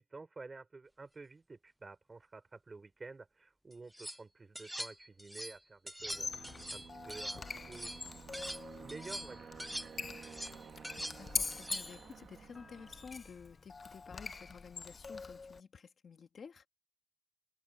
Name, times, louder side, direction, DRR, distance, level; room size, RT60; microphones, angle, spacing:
voice 1, 0.0-8.0 8.7-9.5, right 3 dB, 35° right, 5.4 m, -51 dB
sound 1, 3.7-4.2 4.6-5.6 5.9-8.6 8.9-12.1, equal, 5° right, 0.4 m, -44 dB
Squeak, 6.0-15.6, left 4 dB, 45° left, 0.8 m, -44 dB
Aircraft, 6.1-13.5, right 6 dB, 85° right, 1.6 m, -53 dB
voice 2, 11.2-16.7, left 6 dB, 70° left, 1.8 m, -52 dB
wide cardioid pair, 140°, 0 cm